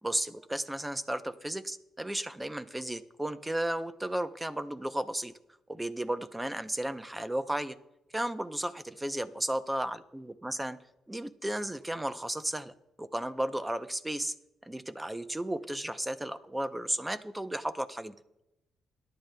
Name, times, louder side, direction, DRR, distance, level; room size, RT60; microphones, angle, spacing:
voice 1, 0.0-5.3 5.7-7.8 8.1-10.8 11.1-14.3 14.6-18.1, right 1 dB, 10° right, 12 dB, 0.6 m, -34 dB
21.5 x 10.5 x 2.3 m, 0.90 s
cardioid pair, 90°, 0 cm